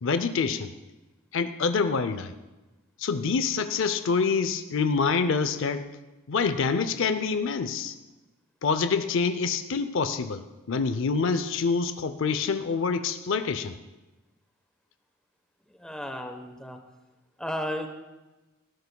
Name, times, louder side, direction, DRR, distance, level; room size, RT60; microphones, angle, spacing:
voice 1, 0.0-0.7 1.3-2.3 3.0-5.9 6.3-7.9 8.6-13.8, left 5 dB, 60° left, 11 dB, 0.5 m, -26 dB
voice 2, 15.8-16.8 17.4-17.9, equal, 5° left, 5 dB, 1.0 m, -33 dB
19.0 x 15.0 x 2.3 m, 1.1 s
head